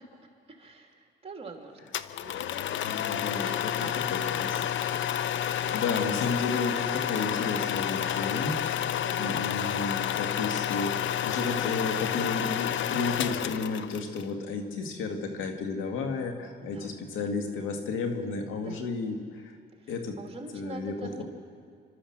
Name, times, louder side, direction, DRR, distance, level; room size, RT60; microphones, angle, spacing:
voice 1, 0.0-1.8 2.2-2.7 3.2-4.7 5.6-6.0 9.0-9.6 11.8-11.9 16.6-17.3 18.6-18.8 19.8-21.2, right 3 dB, 30° right, 3 dB, 2.9 m, -45 dB
sound 1, 1.9-14.2, left 10 dB, 70° left, 0.7 m, -30 dB
voice 2, 2.8-4.7 5.5-8.9 9.2-19.6 19.9-20.2 20.5-21.2, left 4 dB, 90° left, 4 dB, 2.2 m, -33 dB
27.5 x 12.5 x 7.4 m, 2.1 s
cardioid pair, 90°, 20 cm